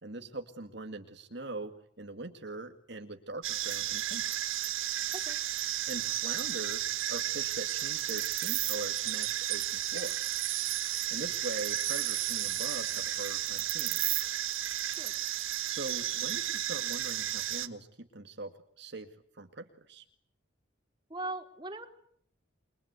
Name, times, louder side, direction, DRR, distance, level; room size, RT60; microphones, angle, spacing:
voice 1, 0.0-4.3 5.9-10.2 11.1-14.0 15.7-19.1 19.3-20.0, right 2 dB, 55° right, 5 dB, 2.1 m, -42 dB
sound 1, 3.4-17.7, right 12 dB, 80° right, 1.6 m, -33 dB
voice 2, 21.1-21.9, right 2 dB, 20° right, 4 dB, 3.4 m, -39 dB
29.0 x 24.0 x 8.2 m, 0.66 s
head